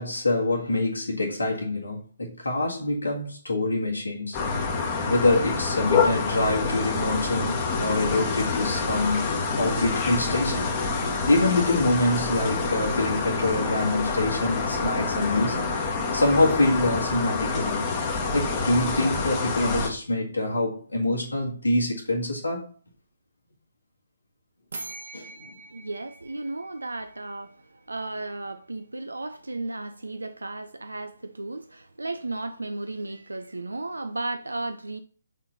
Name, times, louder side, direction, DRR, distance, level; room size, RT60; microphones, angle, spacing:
voice 1, 0.0-4.4 5.1-9.3 9.6-10.7 11.3-15.7 16.1-17.8 18.3-22.6 25.1-25.5, left 2 dB, 70° left, 1.7 m, -25 dB
sound 1, 4.3-19.9, left 4 dB, 25° left, 1.3 m, -27 dB
sound 2, 24.7-27.5, right 3 dB, 60° right, 1.3 m, -42 dB
voice 2, 25.7-27.6 27.9-35.0, right 2 dB, 75° right, 0.5 m, -34 dB
6.2 x 4.3 x 3.9 m
figure-of-eight pair, 135°, 0 cm